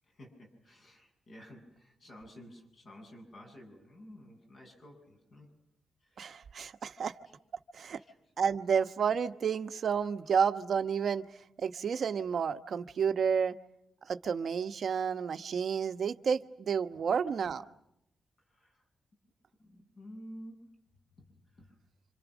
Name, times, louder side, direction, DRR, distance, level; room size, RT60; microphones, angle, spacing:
voice 1, 0.2-5.5 6.0-6.4 7.8-8.2 16.9-17.0 18.5-18.8 19.6-20.8 21.2-21.3 21.6-21.7, equal, 45° left, 2 dB, 7.4 m, -52 dB
voice 2, 6.2-7.1 7.7-8.0 8.4-11.2 11.6-13.5 14.1-17.6, right 6 dB, 50° right, 8 dB, 1.0 m, -30 dB
29.5 x 26.5 x 6.2 m, 0.80 s
wide cardioid pair, 170°, 0 cm